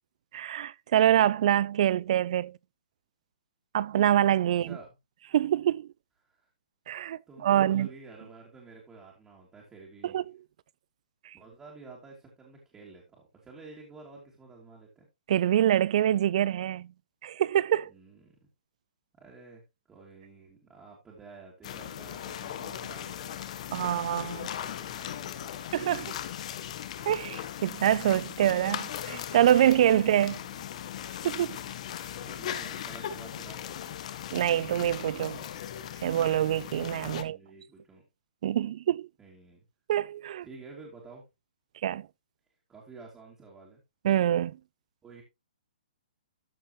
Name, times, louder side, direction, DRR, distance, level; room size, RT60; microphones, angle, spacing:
voice 1, 0.3-2.5 3.7-4.8 5.3-5.9 6.9-7.9 10.0-10.2 11.2-11.4 15.3-16.9 17.2-17.9 23.7-24.5 25.7-26.2 27.1-30.4 31.2-31.6 34.3-35.5 36.0-37.4 38.4-39.1 39.9-40.5 41.8-42.1 44.0-44.6, right 11 dB, 50° right, 0.5 m, -25 dB
voice 2, 4.6-4.9 6.2-6.5 7.3-10.2 11.3-15.1 17.9-18.4 19.2-23.5 24.1-25.7 30.0-30.8 32.0-34.0 37.1-38.0 39.2-39.6 40.4-41.2 42.7-43.8 45.0-45.2, right 3 dB, 10° right, 2.8 m, -50 dB
sound 1, 21.6-37.2, left 10 dB, 50° left, 1.1 m, -38 dB
13.5 x 5.5 x 3.1 m
hypercardioid pair, 150°, 5 cm